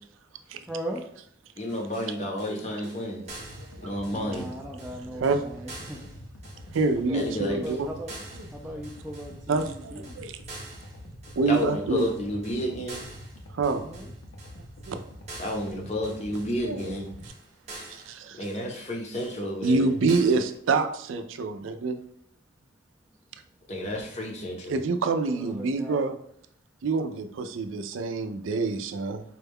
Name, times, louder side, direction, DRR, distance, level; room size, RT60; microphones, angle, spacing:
voice 1, 0.7-1.0 4.0-6.0 7.0-8.1 8.5-10.2 13.8-14.1 25.3-26.0, right 1 dB, 5° right, -3 dB, 0.3 m, -38 dB
voice 2, 1.6-3.3 3.8-4.5 7.1-7.6 11.5-13.0 15.4-17.1 17.7-17.8 18.3-19.9 23.7-24.8, left 1 dB, 35° left, 1 dB, 0.6 m, -31 dB
sound 1, 1.7-20.6, right 2 dB, 35° right, 0.7 m, -47 dB
sound 2, 3.3-17.3, equal, 80° left, 0.7 m, -45 dB
voice 3, 3.6-3.9 5.1-5.4 6.7-7.9 9.5-10.3 11.4-12.1 13.5-13.8 14.9-15.0 16.6-16.9 17.9-18.4 19.6-22.0 24.7-26.1 26.8-29.2, right 3 dB, 80° right, 8 dB, 0.4 m, -26 dB
4.3 x 2.2 x 3.5 m, 0.69 s
head